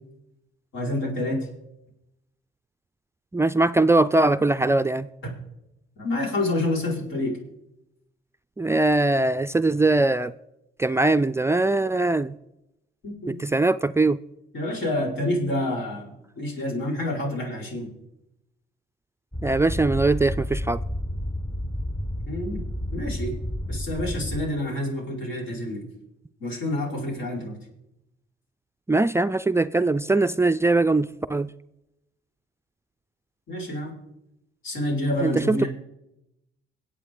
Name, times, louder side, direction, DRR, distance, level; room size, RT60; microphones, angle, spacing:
voice 1, 0.7-1.5 6.0-7.4 13.0-13.4 14.5-17.9 22.3-22.6 22.9-23.4 23.7-25.9 26.4-27.6 33.5-34.0 34.6-35.7, left 1 dB, 75° left, 5.1 m, -28 dB
voice 2, 3.3-5.1 8.6-10.3 10.8-12.4 13.3-14.2 19.4-20.8 28.9-31.5 35.2-35.7, right 2 dB, 15° right, 0.4 m, -21 dB
sound 1, 19.3-24.4, equal, 15° left, 0.9 m, -31 dB
25.0 x 8.4 x 3.8 m
cardioid pair, 90°, 20 cm